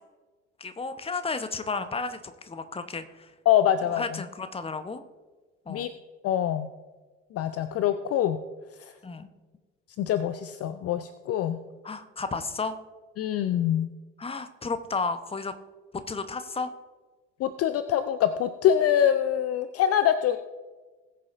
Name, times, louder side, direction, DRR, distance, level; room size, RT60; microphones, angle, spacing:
voice 1, 0.6-3.3 3.9-5.0 5.7-5.9 9.0-9.3 11.8-12.7 14.2-15.5 16.1-16.7, left 4 dB, 15° left, 10 dB, 0.9 m, -32 dB
voice 2, 3.5-4.2 5.7-5.9 6.2-6.7 7.3-8.4 10.0-11.6 13.2-13.9 17.4-20.4, left 10 dB, 40° left, 11 dB, 0.6 m, -24 dB
20.0 x 6.7 x 2.6 m, 1.3 s
figure-of-eight pair, 55°, 38 cm